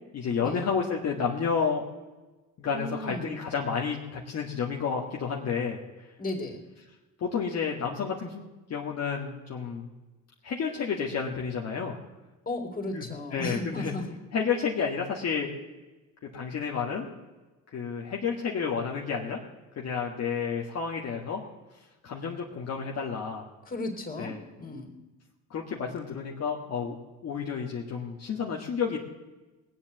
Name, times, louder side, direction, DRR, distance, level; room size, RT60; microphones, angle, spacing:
voice 1, 0.1-1.8 2.6-6.1 7.2-8.4 8.7-9.9 10.4-12.0 12.9-13.0 13.3-13.9 14.3-15.5 16.3-17.1 17.7-19.4 19.8-21.4 22.0-23.4 24.2-24.4 25.5-29.0, left 6 dB, 50° left, -1 dB, 1.8 m, -30 dB
voice 2, 2.6-3.3 6.2-6.6 12.5-14.1 23.7-24.9, left 2 dB, 25° left, 4 dB, 3.4 m, -35 dB
19.0 x 7.7 x 7.9 m, 1.2 s
cardioid pair, 85°, 32 cm